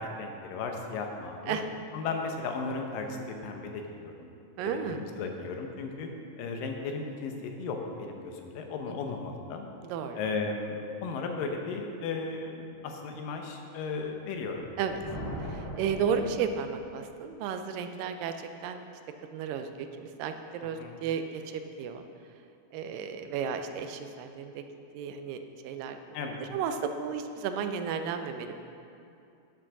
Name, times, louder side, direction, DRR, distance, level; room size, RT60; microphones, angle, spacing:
voice 1, 0.0-1.6 1.9-4.3 4.6-6.1 6.4-9.7 10.2-14.7 20.8-20.9 26.1-26.4, left 4 dB, 85° left, 3 dB, 2.6 m, -35 dB
voice 2, 4.6-5.0 8.9-9.0 9.9-10.2 14.8-15.0 15.4-18.8 19.3-22.0 22.7-24.6 24.9-26.0 26.5-28.6, right 7 dB, 85° right, 7 dB, 2.3 m, -33 dB
Thunder, 14.5-17.1, equal, 35° left, 0.9 m, -40 dB
10.5 x 6.3 x 6.0 m, 2.6 s
omnidirectional pair, 3.9 m